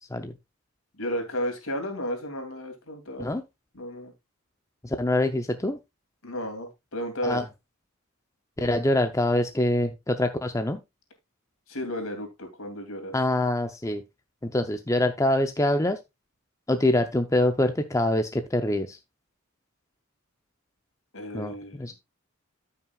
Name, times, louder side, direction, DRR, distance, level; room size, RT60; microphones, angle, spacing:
voice 1, 1.0-3.3 3.7-4.1 6.2-7.4 11.7-13.1 21.1-21.9, equal, 70° left, 5 dB, 2.6 m, -33 dB
voice 2, 4.8-5.8 7.2-7.4 8.6-10.8 13.1-14.0 14.4-16.0 16.7-19.0 21.3-21.9, left 1 dB, 15° left, 7 dB, 0.6 m, -25 dB
14.0 x 5.8 x 2.3 m, 0.22 s
head